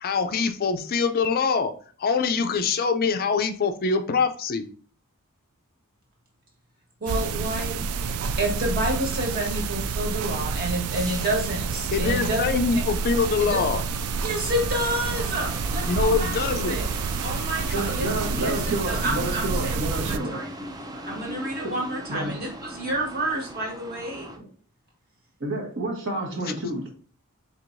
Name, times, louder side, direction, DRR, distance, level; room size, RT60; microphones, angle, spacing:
voice 1, 0.0-1.7 2.0-4.6 11.9-13.8 15.9-16.8, left 5 dB, 45° left, 8 dB, 0.4 m, -24 dB
voice 2, 7.0-7.8 8.4-12.4 13.4-13.6 14.2-16.3 16.7-16.8 17.2-18.5 18.9-20.5 21.0-24.3, right 1 dB, 45° right, -2 dB, 1.5 m, -29 dB
sound 1, 7.1-20.2, right 5 dB, 75° right, 0.3 m, -29 dB
sound 2, 8.1-24.4, right 1 dB, 15° right, 0.5 m, -40 dB
voice 3, 17.7-20.4 21.6-21.7 22.1-22.4 25.4-26.9, right 1 dB, 60° right, -1 dB, 1.2 m, -29 dB
4.5 x 3.4 x 2.6 m, 0.42 s
head